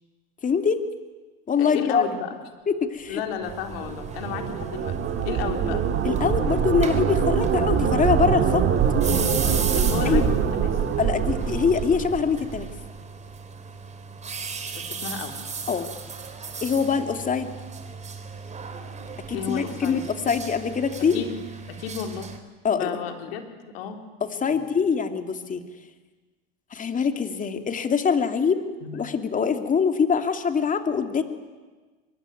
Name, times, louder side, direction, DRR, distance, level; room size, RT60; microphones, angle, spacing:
voice 1, 0.4-0.8 1.5-2.1 2.7-3.2 6.0-8.7 10.0-10.2 11.0-12.7 15.7-15.9 16.6-17.5 19.3-21.2 22.6-23.0 24.2-25.6 26.7-28.6 28.9-31.2, left 6 dB, 25° left, 7 dB, 2.7 m, -24 dB
voice 2, 1.6-2.4 3.1-5.0 5.2-5.8 9.7-10.8 14.7-15.4 19.3-20.1 21.1-21.4 21.7-22.3 22.7-23.5 23.7-24.0 24.4-24.9 28.8-29.0, left 7 dB, 75° left, 5 dB, 4.0 m, -33 dB
sound 1, 3.4-22.4, right 5 dB, 25° right, 3.8 m, -37 dB
sound 2, 3.5-12.7, right 7 dB, 40° right, 4.4 m, -24 dB
24.0 x 23.0 x 9.4 m, 1.3 s
hypercardioid pair, 95°, 30 cm